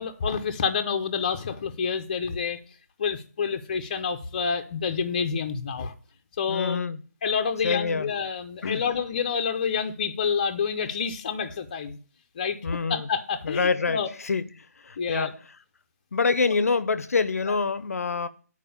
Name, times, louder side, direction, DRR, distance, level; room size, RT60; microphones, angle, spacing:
voice 1, 0.0-2.6 3.0-5.9 6.4-6.8 7.2-12.0 12.4-12.6 12.9-14.1 15.0-15.3 17.5-17.6, left 6 dB, 25° left, 0.8 m, -28 dB
voice 2, 6.5-7.0 7.6-8.1 8.6-8.8 12.6-13.1 13.4-14.4 14.8-15.3 16.1-18.3, left 4 dB, 60° left, 0.7 m, -26 dB
9.1 x 4.7 x 7.0 m
hypercardioid pair, 170°, 9 cm